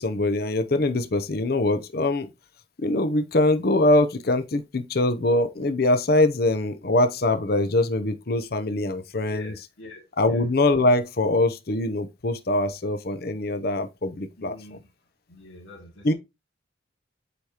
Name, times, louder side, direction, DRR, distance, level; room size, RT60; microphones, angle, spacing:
voice 1, 0.0-2.3 2.8-9.5 10.2-14.8 16.0-16.1, left 2 dB, 50° left, 0.6 m, -23 dB
voice 2, 9.3-10.0 10.3-10.4 14.4-14.8 15.3-16.1, left 2 dB, 85° left, 2.2 m, -44 dB
8.1 x 4.8 x 2.9 m
head